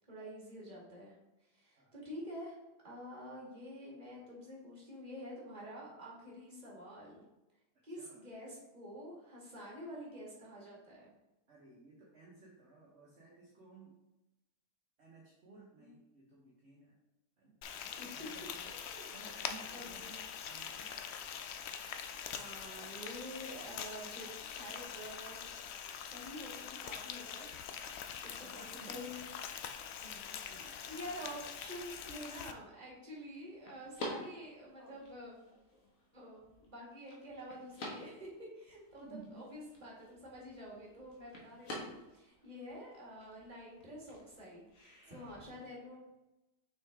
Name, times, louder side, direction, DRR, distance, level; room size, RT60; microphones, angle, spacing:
voice 1, 0.1-1.1 1.5-2.6 2.8-7.2 7.8-11.1 15.8-15.9 17.8-18.1 18.6-19.0 19.7-20.1 22.3-25.4 26.0-27.4 28.2-29.2 30.6-35.3 36.1-39.1 39.3-44.7 45.1-46.1, equal, 25° right, -4 dB, 1.9 m, -48 dB
voice 2, 7.9-8.2 11.5-14.0 15.0-17.0 17.4-17.6 18.1-18.7 19.1-21.3 22.7-22.9 28.1-29.1 29.5-31.1 39.0-39.5 45.0-45.7, right 2 dB, 45° right, -5 dB, 1.4 m, -57 dB
Frying (food), 17.6-32.5, left 8 dB, 90° left, 0.5 m, -44 dB
sound 1, 30.1-45.5, left 1 dB, 60° left, 1.6 m, -51 dB
6.1 x 4.6 x 3.6 m, 0.97 s
omnidirectional pair, 1.7 m